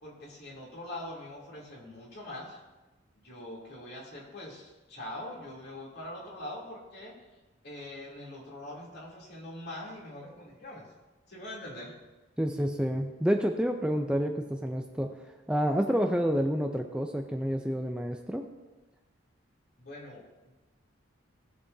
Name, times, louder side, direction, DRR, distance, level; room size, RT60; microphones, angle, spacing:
voice 1, 0.0-2.6 3.2-7.1 7.6-10.9 11.3-11.9 19.8-20.5, left 1 dB, 55° left, -4 dB, 3.0 m, -43 dB
voice 2, 12.4-15.1 15.5-18.4, equal, 5° right, 4 dB, 0.5 m, -29 dB
19.0 x 6.7 x 2.7 m, 1.1 s
head